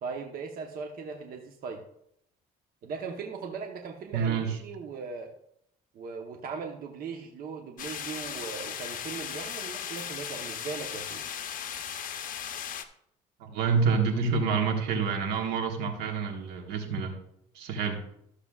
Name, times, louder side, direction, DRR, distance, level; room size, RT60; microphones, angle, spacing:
voice 1, 0.0-1.8 2.8-5.3 5.9-11.3, right 5 dB, 60° right, 2 dB, 1.0 m, -39 dB
voice 2, 4.1-4.6 13.4-17.1 17.5-18.0, right 5 dB, 85° right, 4 dB, 1.5 m, -28 dB
sound 1, 7.8-12.8, left 9 dB, 55° left, 0.8 m, -37 dB
13.5 x 6.8 x 2.4 m, 0.74 s
cardioid pair, 110°, 17 cm